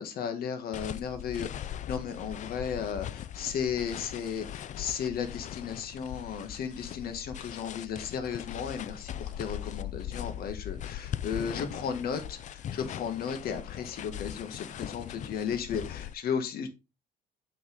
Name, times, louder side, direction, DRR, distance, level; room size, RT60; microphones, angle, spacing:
voice 1, 0.0-16.7, left 7 dB, 65° left, 8 dB, 1.8 m, -35 dB
sound 1, 0.7-16.1, left 11 dB, 45° left, 0.5 m, -40 dB
7.2 x 6.0 x 3.9 m, 0.25 s
cardioid pair, 110°, 17 cm